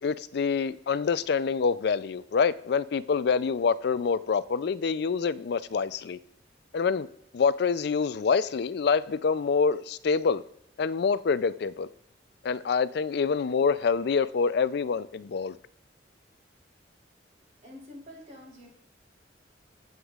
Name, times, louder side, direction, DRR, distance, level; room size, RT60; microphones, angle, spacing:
voice 1, 0.0-6.2 6.7-7.1 7.3-10.4 10.8-11.9 12.4-15.6, left 5 dB, 60° left, 0.4 m, -26 dB
voice 2, 17.6-18.7, left 1 dB, 45° right, 3.4 m, -46 dB
21.5 x 8.0 x 2.4 m
head